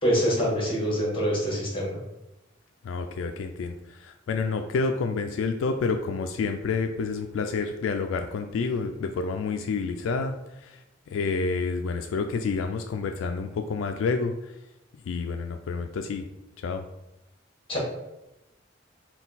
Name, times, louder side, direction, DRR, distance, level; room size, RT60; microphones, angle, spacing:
voice 1, 0.0-1.9 17.7-17.8, equal, 30° left, -3 dB, 1.3 m, -25 dB
voice 2, 2.8-10.8 11.1-14.3 15.1-16.2 16.6-16.9, left 4 dB, 75° left, 6 dB, 0.3 m, -29 dB
3.7 x 2.3 x 4.0 m, 0.93 s
head